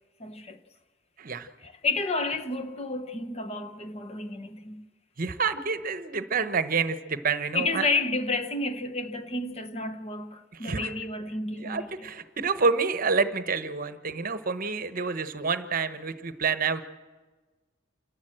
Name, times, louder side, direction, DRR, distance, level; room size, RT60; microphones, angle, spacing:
voice 1, 0.2-0.6 1.6-4.8 7.5-11.9, left 3 dB, 35° left, 1.0 m, -31 dB
voice 2, 1.2-1.5 5.2-7.9 10.5-10.9 11.6-16.8, right 5 dB, 45° right, 1.0 m, -28 dB
28.0 x 12.0 x 7.7 m
head